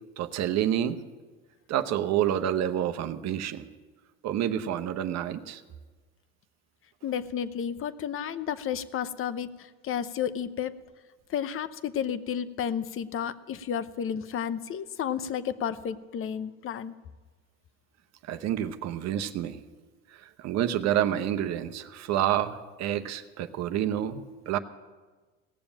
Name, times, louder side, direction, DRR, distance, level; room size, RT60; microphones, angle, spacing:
voice 1, 0.2-1.0 1.7-3.7 4.2-5.6 18.2-19.6 20.1-24.6, right 11 dB, 55° right, 9 dB, 0.9 m, -28 dB
voice 2, 7.0-10.7 11.3-16.9, left 8 dB, 45° left, 14 dB, 0.8 m, -32 dB
17.5 x 7.1 x 8.7 m, 1.3 s
supercardioid pair, 85°, 31 cm